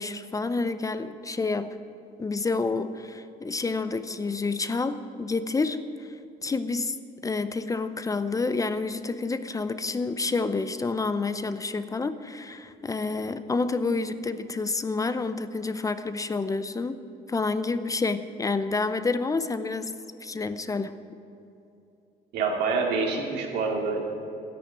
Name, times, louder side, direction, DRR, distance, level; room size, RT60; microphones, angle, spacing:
voice 1, 0.0-1.8 2.2-6.2 6.4-7.0 7.2-17.0 17.3-19.9 20.2-21.0, left 3 dB, 20° left, 12 dB, 0.6 m, -29 dB
voice 2, 22.3-24.0, right 4 dB, 85° right, 0 dB, 2.7 m, -26 dB
13.5 x 10.5 x 8.5 m, 2.8 s
cardioid pair, 110°, 17 cm